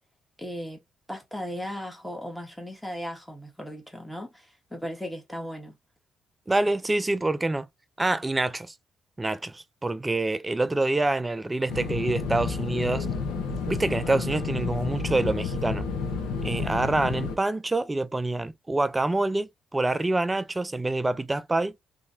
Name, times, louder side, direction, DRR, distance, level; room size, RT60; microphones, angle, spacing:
voice 1, 0.4-0.8 1.1-5.8, equal, 5° left, 1.4 m, -37 dB
voice 2, 6.5-7.7 8.0-8.7 9.2-13.1 13.7-15.8 16.4-21.7, right 2 dB, 20° right, 0.4 m, -26 dB
sound 1, 11.7-17.3, left 5 dB, 85° left, 0.8 m, -30 dB
2.8 x 2.8 x 2.6 m
supercardioid pair, 70°, 0 cm